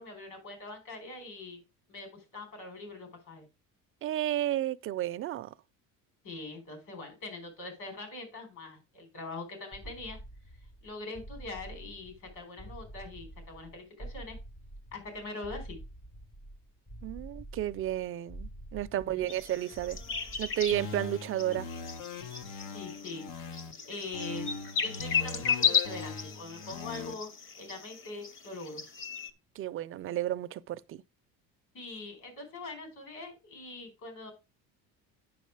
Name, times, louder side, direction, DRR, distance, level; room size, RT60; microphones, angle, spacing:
voice 1, 0.0-1.6 1.9-3.4 6.2-10.2 10.8-14.4 14.9-15.8 18.9-19.4 22.7-23.3 23.9-24.5 24.8-28.8 31.7-34.3, left 3 dB, 60° left, 4.5 m, -43 dB
voice 2, 4.0-5.5 17.0-20.0 20.4-21.7 29.6-31.0, right 13 dB, 40° right, 0.4 m, -32 dB
sound 1, 9.7-21.1, right 1 dB, 10° left, 0.5 m, -47 dB
sound 2, 19.3-29.3, left 7 dB, 35° left, 1.1 m, -35 dB
sound 3, 20.7-23.7 24.1-27.1, left 4 dB, 80° left, 1.2 m, -41 dB
9.4 x 6.0 x 4.7 m
cardioid pair, 160°, 34 cm